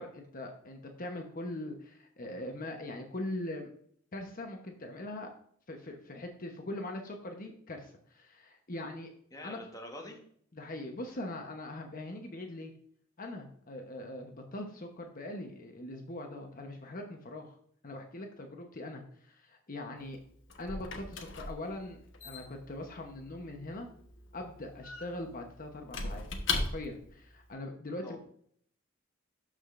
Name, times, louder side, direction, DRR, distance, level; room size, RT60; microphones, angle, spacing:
voice 1, 0.0-3.7 4.1-5.3 5.7-9.1 9.4-9.6 10.0-10.2 10.5-12.7 13.2-17.5 17.8-20.2 20.6-23.9 24.3-28.2, left 1 dB, 45° left, 3 dB, 1.0 m, -41 dB
voice 2, 9.3-10.2 28.0-28.2, left 1 dB, 20° left, 2 dB, 1.3 m, -45 dB
Squeak / Wood, 20.0-27.1, left 3 dB, 65° left, 1.2 m, -39 dB
12.0 x 5.0 x 2.5 m, 0.62 s
head